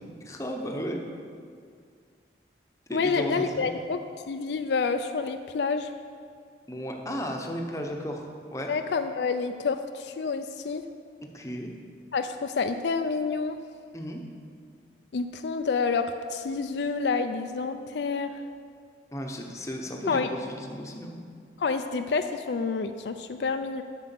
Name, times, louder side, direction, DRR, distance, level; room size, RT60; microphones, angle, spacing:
voice 1, 0.2-1.0 2.9-3.7 6.7-8.7 11.2-11.7 13.9-14.2 19.1-21.2, equal, 15° left, 2 dB, 0.8 m, -34 dB
voice 2, 2.9-4.0 4.3-5.9 8.7-10.8 12.1-13.6 15.1-18.3 20.1-20.3 21.6-23.8, left 4 dB, 70° left, 8 dB, 0.4 m, -28 dB
7.9 x 6.2 x 7.6 m, 2.1 s
head